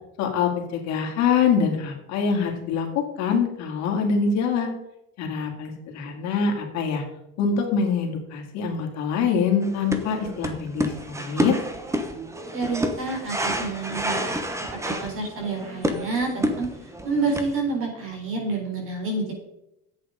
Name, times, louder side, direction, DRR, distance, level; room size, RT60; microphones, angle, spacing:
voice 1, 0.2-2.9 3.2-4.7 5.2-7.0 7.4-11.6, left 6 dB, 60° left, 1 dB, 2.7 m, -24 dB
sound 1, 9.6-17.6, right 1 dB, 10° right, 1.0 m, -29 dB
voice 2, 12.5-14.3 14.9-16.7 17.0-19.3, right 3 dB, 45° right, 1 dB, 4.3 m, -28 dB
10.5 x 8.4 x 5.1 m, 0.84 s
cardioid pair, 160°, 31 cm